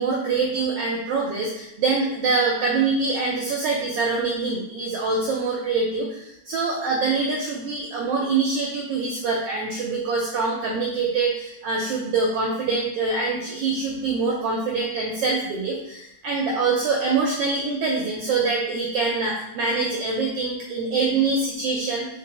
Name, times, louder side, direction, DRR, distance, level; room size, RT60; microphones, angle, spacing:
voice 1, 0.0-6.1 6.5-22.1, right 4 dB, 80° right, -1 dB, 1.3 m, -24 dB
4.4 x 3.0 x 3.9 m, 0.82 s
omnidirectional pair, 3.3 m